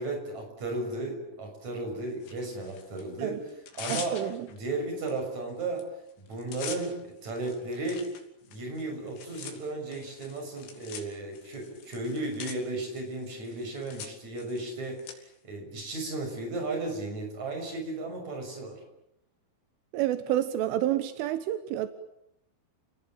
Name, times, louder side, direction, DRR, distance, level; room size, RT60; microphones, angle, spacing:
voice 1, 0.0-3.4 3.8-4.2 4.5-5.9 6.2-8.1 8.5-18.8, right 2 dB, 35° right, 3 dB, 7.6 m, -35 dB
Tearing, 2.2-3.0 3.5-4.6 5.1-5.2 5.5-5.8 6.1-15.1, left 7 dB, 85° left, 5.5 m, -44 dB
voice 2, 3.9-4.5 19.9-21.9, right 12 dB, 85° right, 10 dB, 3.7 m, -29 dB
30.0 x 19.5 x 9.0 m, 0.81 s
omnidirectional pair, 5.6 m